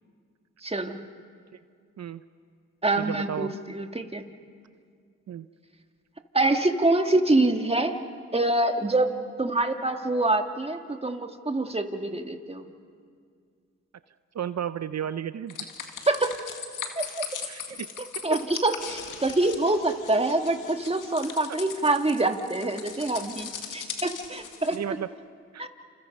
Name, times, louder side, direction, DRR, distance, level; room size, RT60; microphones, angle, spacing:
voice 1, 0.6-1.0 2.8-4.2 6.3-8.0 8.3-12.6 16.1-16.4 17.0-17.3 18.2-25.0 25.6-25.7, right 2 dB, 20° right, 5 dB, 1.9 m, -25 dB
voice 2, 3.0-3.6 5.3-5.5 14.3-15.6 17.5-17.9 18.3-18.4 24.7-25.1 25.5-25.7, right 9 dB, 60° right, 13 dB, 0.7 m, -33 dB
sound 1, 15.5-24.8, left 7 dB, 85° left, 2.0 m, -39 dB
29.0 x 27.0 x 5.4 m, 2.1 s
supercardioid pair, 50°, 31 cm